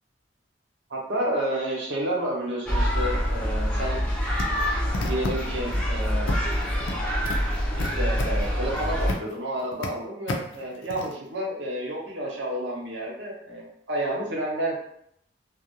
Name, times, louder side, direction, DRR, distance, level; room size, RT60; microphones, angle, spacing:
voice 1, 0.9-4.0 5.0-6.4 7.9-14.7, right 1 dB, 75° right, -4 dB, 0.9 m, -30 dB
sound 1, 2.7-9.1, equal, 5° left, 0.5 m, -26 dB
sound 2, 4.4-5.8 6.3-6.9 7.2-9.3 9.6-9.9 10.3-11.1, left 2 dB, 85° left, 0.4 m, -33 dB
2.4 x 2.0 x 2.8 m, 0.70 s
head